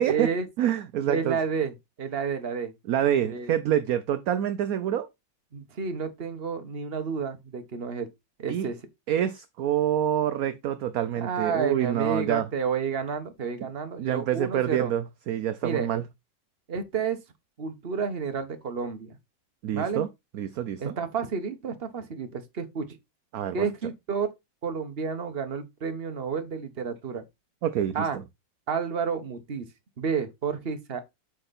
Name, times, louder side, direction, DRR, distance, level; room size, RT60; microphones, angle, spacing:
voice 1, 0.0-0.5 1.1-2.7 3.2-3.5 5.5-8.1 8.4-8.8 11.2-14.9 15.6-15.9 16.7-17.2 17.6-19.2 19.7-20.0 20.8-23.0 23.5-24.3 24.6-27.2 27.9-28.2 28.7-29.7 30.0-31.0, right 6 dB, 35° right, 1.3 m, -30 dB
voice 2, 0.6-1.4 2.9-5.1 8.5-8.7 9.1-12.5 14.0-16.0 19.6-20.1 20.3-20.9 23.3-23.7 27.6-28.1, right 10 dB, 65° right, 0.9 m, -26 dB
7.9 x 5.2 x 4.2 m
omnidirectional pair, 2.1 m